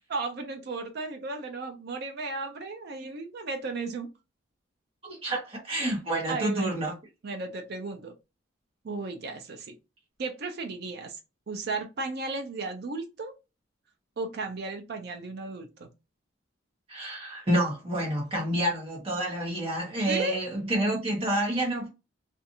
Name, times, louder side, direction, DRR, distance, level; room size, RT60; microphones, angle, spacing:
voice 1, 0.1-4.1 5.8-5.9 6.3-6.7 7.2-8.1 8.8-9.8 10.2-11.2 11.5-13.3 14.2-15.9 20.1-20.4, right 3 dB, 50° right, 0.4 m, -34 dB
voice 2, 5.0-6.9 16.9-21.9, right 1 dB, 25° right, 0.9 m, -28 dB
2.5 x 2.4 x 2.7 m
head